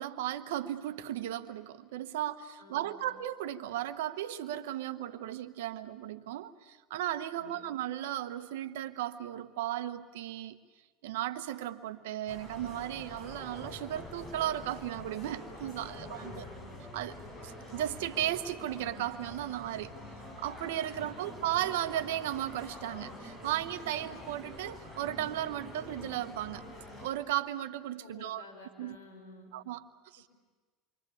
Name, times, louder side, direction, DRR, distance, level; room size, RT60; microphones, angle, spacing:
voice 1, 0.0-10.6 11.0-16.5 16.9-17.1 17.4-19.9 20.4-26.6 27.0-28.4 28.8-29.0 29.5-30.3, right 12 dB, 75° right, 11 dB, 1.2 m, -35 dB
voice 2, 2.6-3.1 7.3-7.7 15.7-16.7 20.9-21.3 28.0-29.5 30.2-30.3, left 3 dB, 80° left, 4 dB, 5.0 m, -53 dB
sound 1, 12.3-27.1, left 1 dB, 35° left, 7.7 m, -46 dB
28.0 x 24.0 x 8.6 m, 1.4 s
hypercardioid pair, 85°, 0 cm